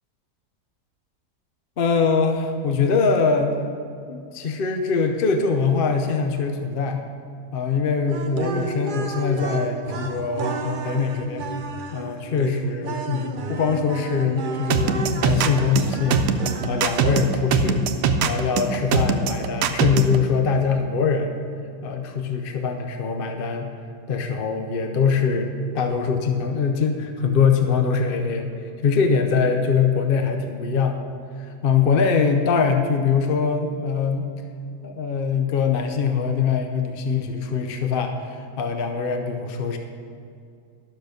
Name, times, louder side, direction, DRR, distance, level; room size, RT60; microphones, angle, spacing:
voice 1, 1.8-3.5 4.1-7.1 7.5-11.5 11.9-16.3 16.6-17.9 18.2-21.4 21.8-23.7 24.1-28.5 28.8-31.0 31.4-34.2 34.8-39.8, left 5 dB, 50° left, 5 dB, 0.7 m, -23 dB
sound 1, 8.1-17.3, right 3 dB, 60° right, 0.5 m, -31 dB
sound 2, 14.7-20.2, right 6 dB, 85° right, 1.3 m, -21 dB
12.0 x 6.6 x 6.5 m, 2.4 s
omnidirectional pair, 1.7 m